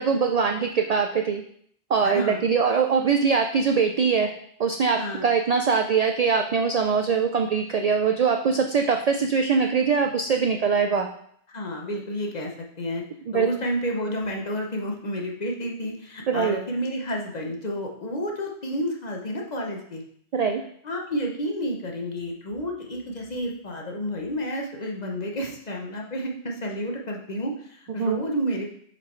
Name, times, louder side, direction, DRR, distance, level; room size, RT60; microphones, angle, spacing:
voice 1, 0.0-1.4 1.9-4.3 4.6-11.1 13.3-13.5 16.3-16.6 20.3-20.6 28.0-28.2, right 5 dB, 70° right, 4 dB, 0.3 m, -22 dB
voice 2, 2.0-2.4 5.0-5.2 11.5-12.5 12.8-13.0 13.3-20.0 20.8-28.8, equal, 40° left, 0 dB, 0.9 m, -30 dB
7.2 x 4.3 x 3.1 m, 0.65 s
omnidirectional pair, 1.2 m